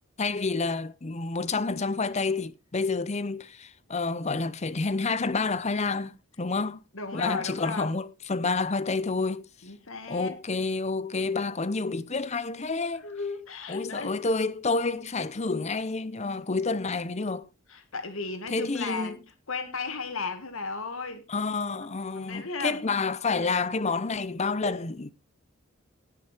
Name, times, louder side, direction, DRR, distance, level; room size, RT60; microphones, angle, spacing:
voice 1, 0.2-6.8 7.1-9.4 10.1-13.1 13.7-17.5 18.5-19.2 21.3-25.1, left 3 dB, 35° left, 0.7 m, -29 dB
voice 2, 6.9-7.9 9.6-10.4 13.0-14.2 17.7-19.2 19.5-21.3 22.1-22.9, left 4 dB, 85° left, 2.1 m, -35 dB
17.5 x 6.1 x 4.5 m
head